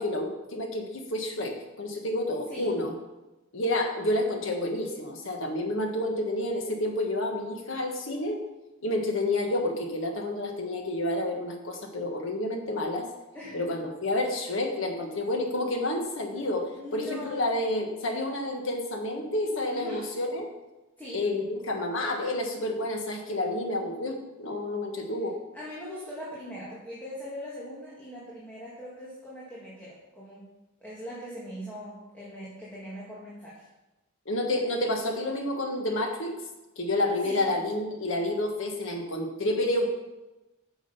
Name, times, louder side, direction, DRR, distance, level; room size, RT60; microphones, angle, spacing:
voice 1, 0.0-2.9 3.5-8.4 8.8-13.1 13.5-20.4 21.1-25.4 34.2-36.3 36.8-39.9, left 1 dB, 70° left, 3 dB, 1.5 m, -29 dB
voice 2, 13.3-13.7 16.3-17.5 19.7-20.1 21.0-21.3 25.5-30.5 30.8-33.7 37.2-37.5, equal, 10° left, -7 dB, 2.0 m, -41 dB
9.1 x 6.4 x 5.4 m, 1.0 s
head